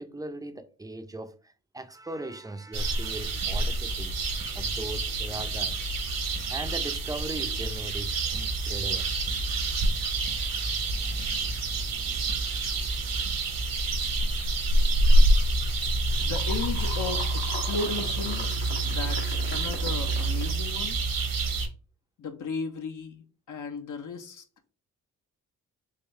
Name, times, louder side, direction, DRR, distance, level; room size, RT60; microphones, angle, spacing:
voice 1, 0.0-4.1 4.6-5.8 6.5-9.1, right 2 dB, 10° right, 0.6 m, -39 dB
sound 1, 2.7-21.7, right 2 dB, 60° right, 1.1 m, -27 dB
sound 2, 15.6-20.9, left 5 dB, 70° left, 1.4 m, -41 dB
voice 2, 16.2-18.4 18.8-21.0 22.2-24.4, left 4 dB, 55° left, 0.8 m, -35 dB
3.8 x 2.6 x 3.2 m
supercardioid pair, 55°, 37 cm